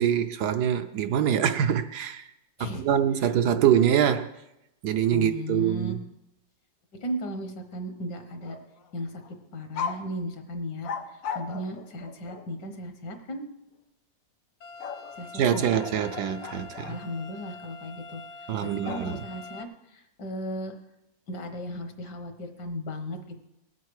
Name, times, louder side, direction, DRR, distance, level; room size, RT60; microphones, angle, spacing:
voice 1, 0.0-2.3 2.6-4.3 4.8-6.0 15.3-17.0 18.5-19.2, right 9 dB, 70° right, 1.1 m, -24 dB
voice 2, 2.6-2.9 5.1-5.9 7.0-8.6 8.9-9.2 9.5-13.4 15.2-15.7 16.9-20.7 21.3-23.4, equal, 70° left, 1.9 m, -36 dB
sound 1, 8.3-8.9 9.2-9.4 9.7-10.1 10.8-12.5 14.8-17.0 18.8-19.5, left 6 dB, 85° left, 1.6 m, -37 dB
sound 2, 14.6-19.6, left 4 dB, 50° left, 1.1 m, -45 dB
19.5 x 8.4 x 4.8 m
omnidirectional pair, 2.0 m